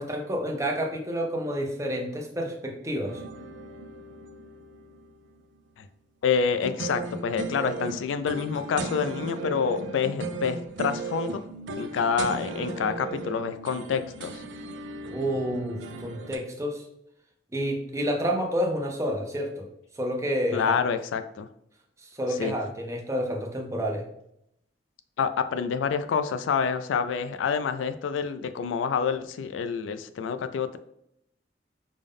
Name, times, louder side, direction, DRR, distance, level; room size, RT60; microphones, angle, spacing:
voice 1, 0.0-3.2 15.1-16.8 17.5-19.7 19.9-20.8 22.0-24.0, equal, 15° right, 1 dB, 0.5 m, -29 dB
sound 1, 3.1-5.4 6.6-16.4, right 3 dB, 75° right, 0.5 m, -37 dB
voice 2, 6.2-11.4 11.8-14.4 20.5-21.5 22.4-22.5 25.2-30.8, left 6 dB, 85° left, 10 dB, 0.3 m, -27 dB
5.2 x 2.1 x 3.5 m, 0.76 s
head